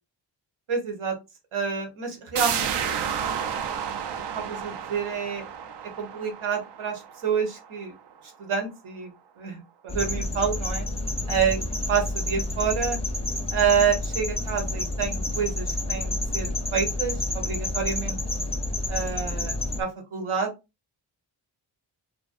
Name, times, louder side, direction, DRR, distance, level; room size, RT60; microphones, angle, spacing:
voice 1, 0.7-1.1 1.5-2.7 3.2-4.0 4.3-5.4 6.0-7.9 8.4-9.1 9.4-10.9 11.3-11.6 11.9-13.0 13.5-18.2 18.9-20.5, right 6 dB, 80° right, 3 dB, 0.9 m, -28 dB
sound 1, 2.4-7.8 8.2-8.3, right 8 dB, 60° right, 0.5 m, -31 dB
sound 2, 9.9-19.8, left 2 dB, 10° left, 0.6 m, -29 dB
2.5 x 2.2 x 2.4 m, 0.24 s
cardioid pair, 55°, 48 cm